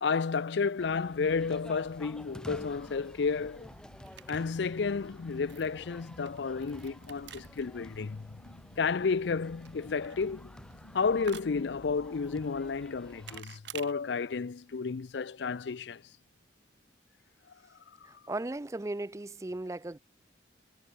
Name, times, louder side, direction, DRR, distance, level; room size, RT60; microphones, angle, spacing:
voice 1, 0.0-3.7 4.3-8.3 8.8-10.4 10.9-16.0, left 5 dB, 65° left, 0.5 m, -31 dB
sound 1, 0.8-13.4, equal, 5° left, 1.0 m, -51 dB
sound 2, 2.7-13.9, right 9 dB, 65° right, 1.4 m, -53 dB
sound 3, 3.3-11.2, left 1 dB, 80° left, 1.4 m, -54 dB
voice 2, 18.1-20.0, right 2 dB, 15° right, 0.4 m, -36 dB
head